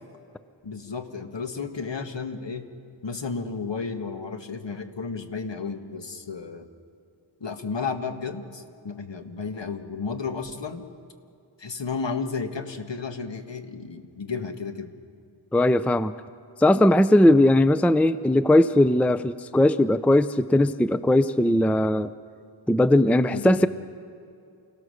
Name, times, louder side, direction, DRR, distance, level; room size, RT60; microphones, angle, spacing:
voice 1, 0.6-2.7 3.0-6.7 7.4-10.9 11.6-14.9 23.3-23.6, left 5 dB, 65° left, 6 dB, 1.7 m, -33 dB
voice 2, 15.5-16.1 16.6-22.1 22.7-23.7, left 1 dB, 5° left, 13 dB, 0.5 m, -19 dB
29.0 x 17.0 x 6.5 m, 2.5 s
wide cardioid pair, 80°, 46 cm